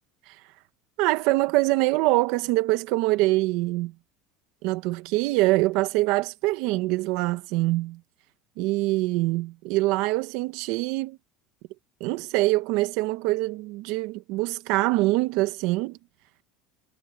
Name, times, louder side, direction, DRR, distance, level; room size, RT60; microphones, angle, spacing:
voice 1, 1.0-3.9 4.6-8.0 8.6-11.2 12.0-16.0, right 20 dB, 60° right, 1.3 m, -24 dB
cardioid pair, 155°, 0 cm